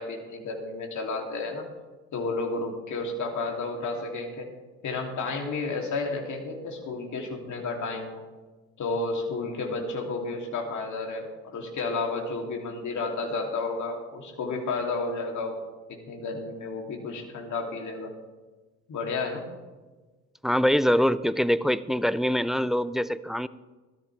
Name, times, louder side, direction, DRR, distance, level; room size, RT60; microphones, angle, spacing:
voice 1, 0.0-1.7 2.1-4.5 4.8-8.2 8.8-15.6 15.9-18.1 18.9-19.4, left 3 dB, 45° left, 1 dB, 2.9 m, -32 dB
voice 2, 20.4-23.5, equal, ahead, 16 dB, 0.3 m, -24 dB
18.0 x 13.0 x 3.4 m, 1.3 s
hypercardioid pair, 60°, 41 cm